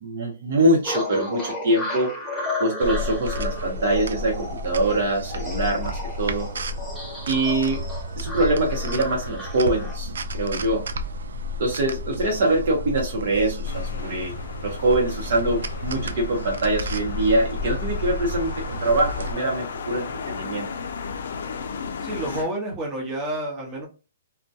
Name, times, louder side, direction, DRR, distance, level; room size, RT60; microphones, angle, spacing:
voice 1, 0.0-2.1 2.6-6.5 7.3-7.8 8.2-10.9 11.6-14.3 14.6-20.7, right 2 dB, 55° right, -1 dB, 0.7 m, -24 dB
sound 1, 0.8-10.0, left 2 dB, 5° left, 0.6 m, -34 dB
sound 2, 2.8-19.3, left 1 dB, 85° right, 0.3 m, -32 dB
sound 3, 13.6-22.4, left 5 dB, 70° left, 0.4 m, -35 dB
voice 2, 22.0-23.8, right 1 dB, 25° right, -1 dB, 0.9 m, -29 dB
2.2 x 2.1 x 2.6 m, 0.32 s
hypercardioid pair, 155°, 0 cm